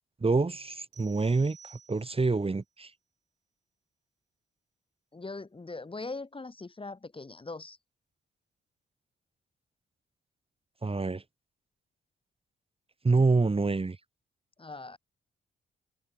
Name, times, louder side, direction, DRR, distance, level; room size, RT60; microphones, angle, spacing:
voice 1, 0.2-2.9 10.8-11.2 13.0-14.0, right 3 dB, 25° right, 1.5 m, -26 dB
sound 1, 0.9-2.5, right 7 dB, 55° right, 6.6 m, -55 dB
voice 2, 5.1-7.8 14.6-15.0, left 3 dB, 25° left, 1.6 m, -41 dB
supercardioid pair, 55°, 21 cm